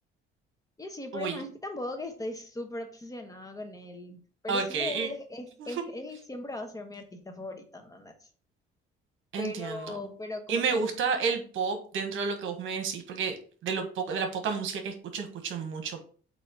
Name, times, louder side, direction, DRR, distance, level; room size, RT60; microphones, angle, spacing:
voice 1, 0.8-8.3 9.4-10.9, left 2 dB, 15° left, 5 dB, 1.1 m, -39 dB
voice 2, 4.5-5.1 5.6-5.7 9.3-10.0 10.5-13.3 13.6-16.0, right 5 dB, 70° right, 6 dB, 1.3 m, -31 dB
7.8 x 3.0 x 4.5 m, 0.42 s
cardioid pair, 115°, 21 cm